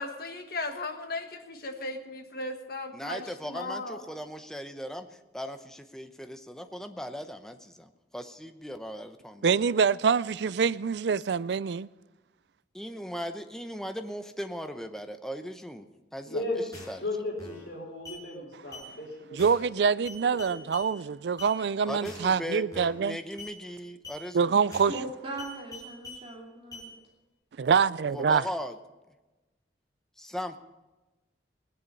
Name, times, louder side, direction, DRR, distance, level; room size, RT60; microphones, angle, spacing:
voice 1, 0.0-4.0, left 2 dB, 55° left, 1.5 m, -36 dB
voice 2, 2.9-5.1 5.3-9.5 12.7-17.1 21.9-24.5 28.1-28.8 30.2-30.6, equal, 5° left, 0.7 m, -38 dB
voice 3, 9.4-11.9 19.3-23.2 24.3-24.9 27.6-28.4, right 6 dB, 70° right, 0.4 m, -25 dB
voice 4, 16.2-16.6 17.0-19.5 20.3-20.6, left 2 dB, 75° left, 4.5 m, -35 dB
sound 1, 16.7-17.0 17.4-17.7 18.1-18.2 18.7-18.9 19.4-19.7 20.1-20.9 21.4-21.5 22.0-22.4 22.7-23.0 23.4-23.5 24.0-24.2 24.7-25.0 25.4-26.2 26.7-26.9, left 2 dB, 20° left, 6.5 m, -44 dB
voice 5, 24.9-27.0, right 2 dB, 30° right, 2.5 m, -39 dB
19.0 x 10.0 x 5.4 m
head